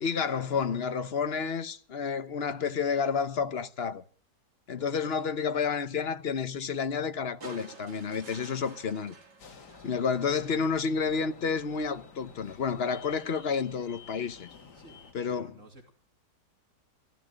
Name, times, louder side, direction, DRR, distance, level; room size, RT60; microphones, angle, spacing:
voice 1, 0.0-4.0 4.7-9.1 9.8-14.5 15.1-15.6, left 6 dB, 45° left, 1.0 m, -30 dB
voice 2, 4.7-5.3 9.8-10.0 14.7-15.9, equal, 45° right, 3.1 m, -54 dB
sound 1, 7.4-10.7 12.0-12.1, right 4 dB, 75° right, 2.9 m, -50 dB
sound 2, 9.4-15.1, left 6 dB, 75° left, 2.3 m, -51 dB
15.0 x 14.0 x 6.5 m
omnidirectional pair, 1.8 m